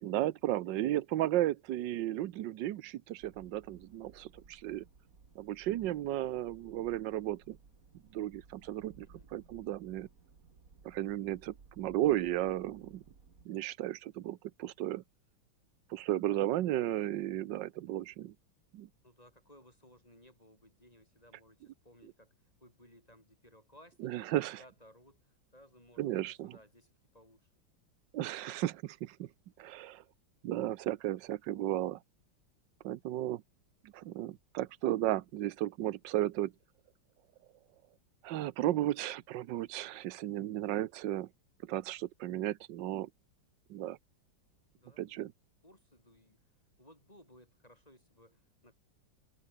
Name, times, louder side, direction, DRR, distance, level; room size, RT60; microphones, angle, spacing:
voice 1, 0.0-4.8 5.3-7.6 8.1-10.1 10.8-13.0 13.4-15.0 15.9-18.3 18.7-18.9 24.0-24.6 26.0-26.6 28.1-29.3 29.6-30.0 30.4-32.0 32.8-33.4 33.8-36.5 38.2-41.3 41.6-43.1 43.7-44.0 45.0-45.3, right 14 dB, 70° right, 1.4 m, -34 dB
sound 1, 3.2-13.5, right 5 dB, 45° right, 2.7 m, -60 dB
voice 2, 19.0-27.5 44.7-45.3 45.6-46.4 46.8-48.7, left 1 dB, 20° left, 6.6 m, -61 dB
omnidirectional pair, 2.1 m